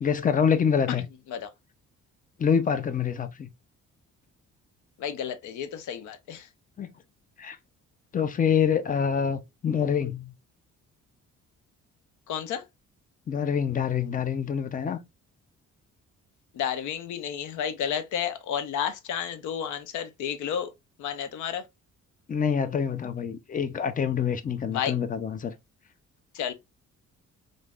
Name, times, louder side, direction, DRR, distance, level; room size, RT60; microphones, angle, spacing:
voice 1, 0.0-1.1 2.4-3.5 6.8-6.9 7.4-7.6 8.1-10.3 13.3-15.0 22.3-25.5, left 7 dB, 30° left, 0.5 m, -26 dB
voice 2, 5.0-6.5 12.3-12.6 16.5-20.7 21.0-21.6 24.7-24.9 26.3-26.5, left 8 dB, 80° left, 0.6 m, -31 dB
3.2 x 2.6 x 2.3 m
cardioid pair, 90°, 30 cm